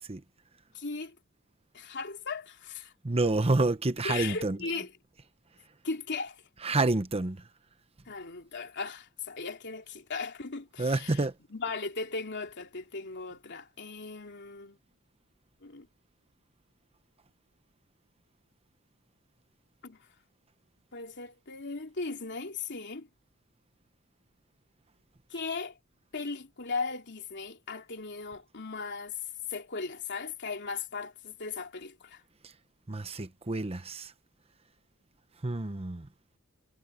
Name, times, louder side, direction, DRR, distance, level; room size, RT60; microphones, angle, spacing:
voice 1, 0.7-1.1 1.7-2.9 3.2-3.3 4.0-4.9 5.8-6.4 8.1-11.2 11.5-14.8 15.6-15.9 19.8-20.0 20.9-23.1 25.3-25.8 26.1-29.2 29.5-32.2, left 4 dB, 55° left, 3.1 m, -37 dB
voice 2, 3.0-4.7 6.6-7.4 10.8-11.3 32.4-32.5 32.9-34.1 35.4-36.1, right 2 dB, 30° right, 0.9 m, -28 dB
head